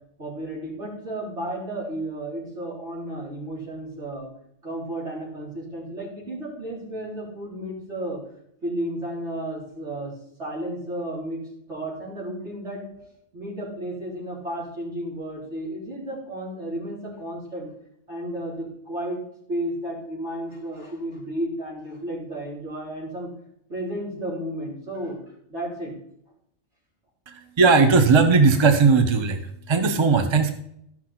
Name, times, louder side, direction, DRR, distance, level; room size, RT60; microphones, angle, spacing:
voice 1, 0.2-4.3 4.6-8.2 8.6-10.1 10.4-11.4 11.7-12.8 13.3-17.7 18.1-19.2 19.5-23.3 23.7-25.2 25.5-25.9, right 1 dB, 75° right, -6 dB, 4.3 m, -33 dB
voice 2, 27.3-30.5, right 4 dB, 30° right, 7 dB, 0.7 m, -18 dB
13.5 x 6.0 x 4.2 m, 0.74 s
omnidirectional pair, 1.2 m